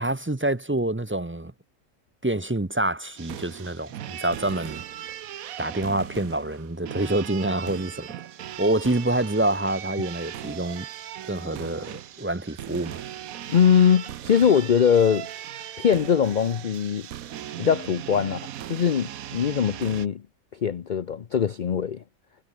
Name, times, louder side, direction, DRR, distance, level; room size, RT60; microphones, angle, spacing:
voice 1, 0.0-1.5 2.2-4.8 5.6-8.2 8.6-10.9 11.3-13.0, right 1 dB, 10° right, 0.6 m, -27 dB
sound 1, 3.2-20.1, right 11 dB, 85° right, 1.3 m, -38 dB
voice 2, 13.5-15.3 15.8-17.1 17.6-20.2 20.6-22.0, left 7 dB, 45° left, 0.6 m, -21 dB
omnidirectional pair, 1.4 m